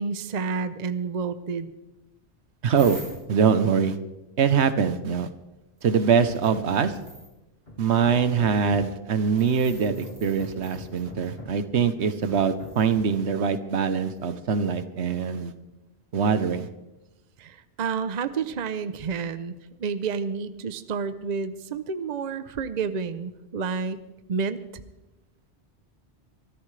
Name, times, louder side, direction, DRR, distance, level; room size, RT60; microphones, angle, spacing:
voice 1, 0.0-1.7 17.4-24.0 24.3-24.8, right 5 dB, 45° right, 12 dB, 0.7 m, -30 dB
voice 2, 2.6-3.0 3.3-4.0 4.4-5.3 5.8-6.9 7.8-15.5 16.1-16.7, right 6 dB, 75° right, 11 dB, 1.2 m, -23 dB
sound 1, 2.8-3.4 5.8-5.9 6.3-7.3 9.3-11.3 12.1-13.2 14.1-14.2, equal, 15° right, 5.0 m, -46 dB
Hammer, 5.8-7.2 7.7-9.1 9.7-11.7 12.3-13.2, left 2 dB, 60° left, 2.7 m, -43 dB
24.0 x 13.5 x 3.3 m, 0.99 s
omnidirectional pair, 1.1 m